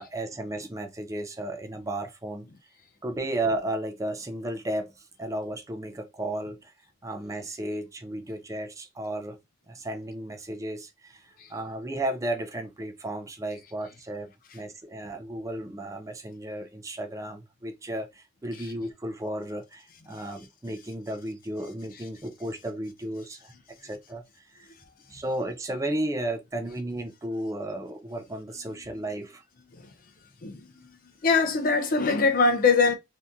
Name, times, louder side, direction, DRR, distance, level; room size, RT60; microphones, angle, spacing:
voice 1, 0.0-2.5 3.0-4.9 5.2-6.7 7.0-9.4 9.7-23.5 23.8-24.7 25.1-29.4, right 1 dB, 15° right, 0.4 m, -34 dB
voice 2, 31.2-32.9, left 4 dB, 45° left, 0.5 m, -22 dB
2.7 x 2.5 x 3.5 m
head